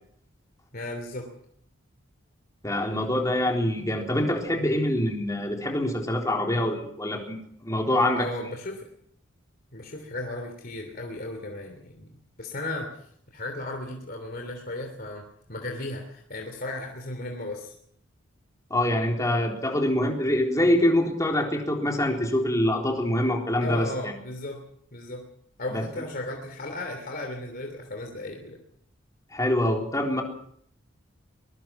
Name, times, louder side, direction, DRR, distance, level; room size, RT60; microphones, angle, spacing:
voice 1, 0.7-1.3 8.1-8.9 9.7-17.7 23.6-24.6 24.9-25.3 25.6-28.6, left 2 dB, 45° left, 2 dB, 3.1 m, -35 dB
voice 2, 2.6-8.3 18.7-24.1 25.7-25.8 29.3-30.2, left 1 dB, 15° left, 1 dB, 3.7 m, -25 dB
22.5 x 21.5 x 6.0 m, 0.66 s
head